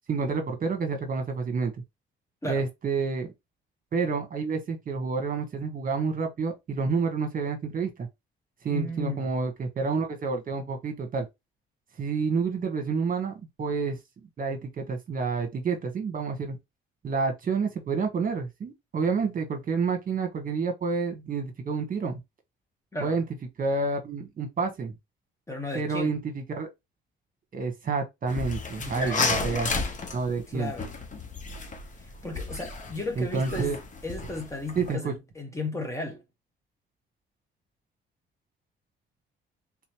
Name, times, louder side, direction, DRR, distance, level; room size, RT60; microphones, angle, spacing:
voice 1, 0.1-1.8 2.4-3.3 3.9-8.1 8.6-11.3 12.0-14.0 14.4-16.6 17.0-22.2 23.0-23.2 23.6-24.9 25.7-26.7 27.5-29.7 30.1-30.7 33.2-33.8 34.7-35.1, right 4 dB, 45° right, 1.3 m, -29 dB
voice 2, 8.7-9.3 22.9-23.2 25.5-26.1 28.8-29.9 30.5-30.9 32.0-33.7 34.0-36.2, left 2 dB, 15° left, 1.4 m, -35 dB
sound 1, 28.3-34.9, left 4 dB, 40° left, 1.0 m, -33 dB
3.6 x 3.0 x 3.1 m
cardioid pair, 90°, 20 cm